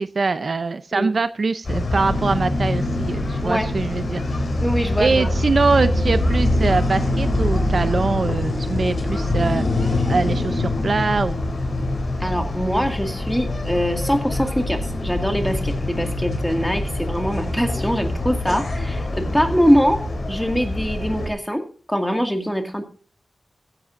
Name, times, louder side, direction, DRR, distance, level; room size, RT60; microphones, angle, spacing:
voice 1, 0.0-4.2 5.0-9.6 10.1-11.5, right 4 dB, 55° right, 12 dB, 0.6 m, -23 dB
sound 1, 1.6-21.3, left 2 dB, 55° left, 4.1 m, -24 dB
voice 2, 4.6-5.3 12.2-20.0 20.3-21.6 21.9-22.8, equal, ahead, 5 dB, 2.1 m, -23 dB
15.0 x 11.0 x 2.6 m, 0.41 s
wide cardioid pair, 115°, 0 cm